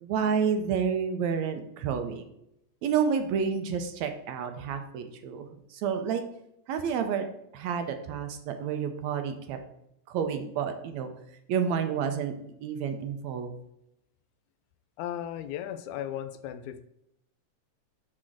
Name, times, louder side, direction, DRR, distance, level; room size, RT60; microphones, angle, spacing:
voice 1, 0.0-2.2 2.8-6.2 6.7-7.3 7.5-9.6 10.1-11.1 11.5-12.3 12.6-13.5, right 7 dB, 75° right, 7 dB, 1.8 m, -29 dB
voice 2, 15.0-16.8, left 11 dB, 80° left, 11 dB, 1.9 m, -36 dB
6.3 x 4.3 x 6.2 m, 0.79 s
omnidirectional pair, 3.5 m